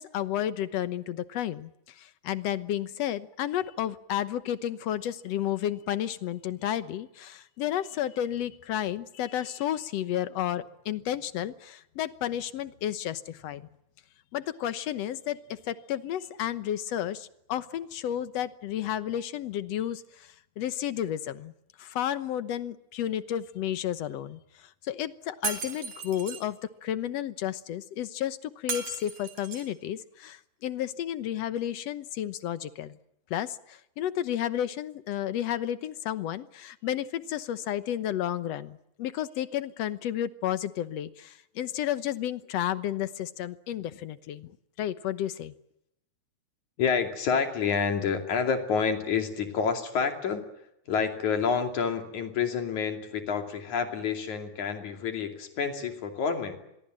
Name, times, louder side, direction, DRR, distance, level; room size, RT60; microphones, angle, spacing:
voice 1, 0.0-1.7 2.0-13.6 14.3-15.4 15.7-20.0 20.6-21.5 21.8-24.4 24.9-33.0 33.3-44.5 44.8-45.5, left 11 dB, 65° left, 13 dB, 2.1 m, -32 dB
Shatter, 25.4-26.4 28.7-29.7, right 6 dB, 90° right, 4.5 m, -35 dB
voice 2, 46.8-50.5 50.9-56.6, left 6 dB, 80° left, 5 dB, 4.1 m, -28 dB
26.0 x 22.5 x 7.6 m, 0.82 s
omnidirectional pair, 3.3 m